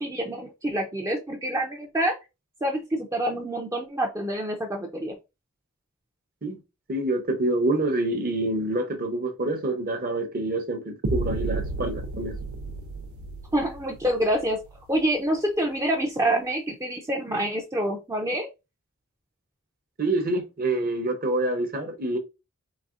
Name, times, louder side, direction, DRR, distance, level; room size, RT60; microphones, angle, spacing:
voice 1, 0.0-2.1 2.6-5.1 13.5-14.6 14.9-18.5, right 1 dB, 15° right, 0.4 m, -27 dB
voice 2, 6.9-12.4 20.0-22.2, right 2 dB, 40° right, 0.7 m, -27 dB
sound 1, 11.0-15.0, right 2 dB, 80° right, 0.6 m, -32 dB
4.0 x 3.3 x 2.4 m
head